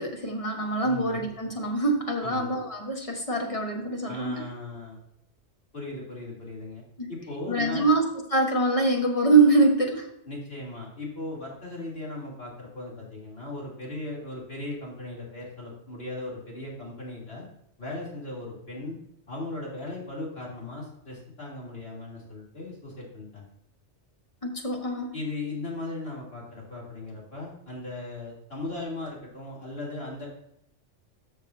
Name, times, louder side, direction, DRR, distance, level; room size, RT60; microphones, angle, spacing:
voice 1, 0.0-4.4 7.0-7.1 7.5-8.0 8.3-10.1 24.4-25.1, right 3 dB, 30° left, 2 dB, 1.5 m, -24 dB
voice 2, 0.8-1.2 2.2-2.5 4.0-5.0 5.7-6.8 7.1-7.9 10.3-17.5 17.8-19.0 19.3-23.5 25.1-30.3, left 2 dB, 60° left, -5 dB, 3.4 m, -37 dB
13.0 x 6.3 x 2.7 m, 0.75 s
omnidirectional pair, 1.2 m